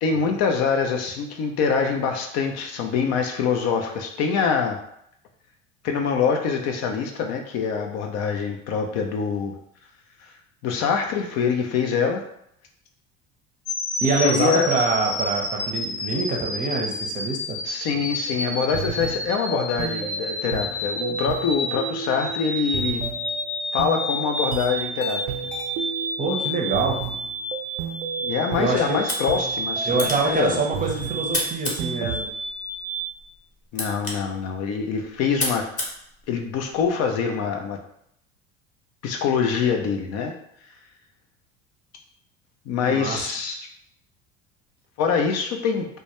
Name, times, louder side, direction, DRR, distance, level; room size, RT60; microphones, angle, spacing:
voice 1, 0.0-4.8 5.8-9.5 10.2-10.3 10.6-12.2 14.2-14.7 17.6-23.0 23.7-25.2 28.2-30.6 33.7-35.7 36.3-37.8 39.0-40.3 42.7-43.6 45.0-45.9, left 6 dB, 50° left, 3 dB, 0.5 m, -24 dB
sound 1, 13.6-33.0, equal, 80° left, 0.8 m, -30 dB
voice 2, 14.0-17.6 26.2-27.0 28.6-29.0 29.8-32.3 42.8-43.3, right 3 dB, 25° right, 0 dB, 0.6 m, -25 dB
sound 2, 18.3-31.4 31.8-32.2, right 7 dB, 75° right, 0.5 m, -34 dB
sound 3, 28.9-36.9, left 1 dB, 25° left, 0.8 m, -34 dB
2.2 x 2.2 x 2.9 m, 0.72 s
hypercardioid pair, 75°, 32 cm